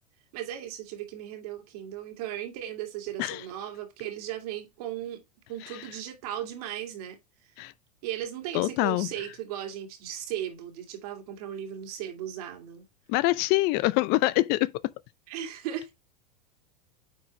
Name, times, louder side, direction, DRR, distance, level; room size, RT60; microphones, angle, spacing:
voice 1, 0.3-5.2 5.5-7.5 8.0-12.8 15.3-15.9, right 11 dB, 65° right, 2.6 m, -37 dB
voice 2, 8.5-9.1 13.1-14.7, left 19 dB, 50° left, 0.6 m, -24 dB
9.5 x 4.7 x 3.3 m
hypercardioid pair, 95°, 21 cm